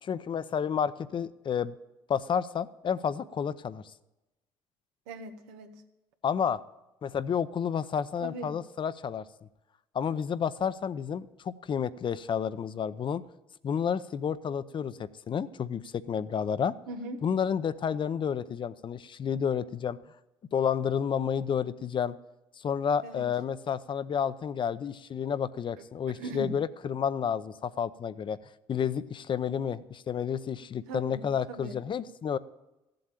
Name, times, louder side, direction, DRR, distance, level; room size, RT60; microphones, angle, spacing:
voice 1, 0.0-1.7 2.1-3.8 6.2-6.6 7.0-9.2 9.9-13.2 13.6-16.7 17.2-20.0 20.5-22.2 22.6-28.4 28.7-32.4, left 7 dB, 45° left, 15 dB, 0.7 m, -30 dB
voice 2, 5.1-5.8 8.2-8.5 16.9-17.2 23.0-23.3 26.1-26.6 30.9-31.8, right 2 dB, 85° right, 6 dB, 1.4 m, -40 dB
14.0 x 7.8 x 8.9 m, 0.98 s
supercardioid pair, 70°, 11 cm